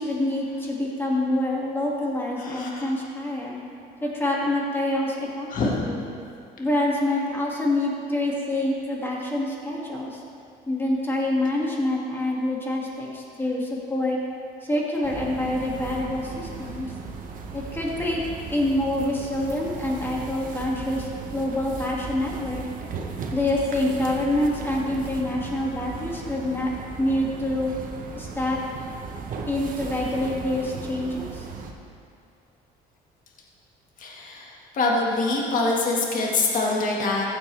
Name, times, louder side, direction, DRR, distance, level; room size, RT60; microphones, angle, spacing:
voice 1, 0.0-3.6 4.0-6.0 6.6-10.2 10.7-14.2 14.6-16.9 17.5-18.2 18.5-22.6 23.3-26.7 27.0-27.7 28.2-28.6 29.5-31.5, left 1 dB, 15° left, -3 dB, 2.2 m, -26 dB
voice 2, 2.4-2.9 5.5-5.9 34.0-37.2, left 3 dB, 50° left, -2 dB, 1.8 m, -25 dB
sound 1, 15.0-31.7, right 5 dB, 55° right, 1.1 m, -37 dB
15.0 x 8.5 x 3.4 m, 2.4 s
cardioid pair, 110°, 17 cm